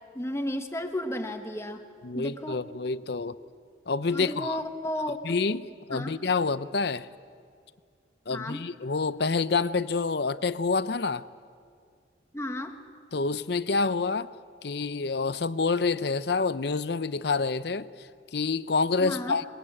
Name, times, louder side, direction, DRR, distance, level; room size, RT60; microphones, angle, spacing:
voice 1, 0.1-1.8 2.1-2.7 4.1-5.2 5.9-6.2 8.3-8.6 12.3-12.8 19.0-19.4, left 1 dB, 15° left, 1.4 m, -33 dB
voice 2, 2.0-3.4 3.9-4.6 5.2-7.1 8.3-11.2 13.1-14.3 14.6-19.5, left 4 dB, 55° left, 0.6 m, -28 dB
22.5 x 22.0 x 8.7 m
head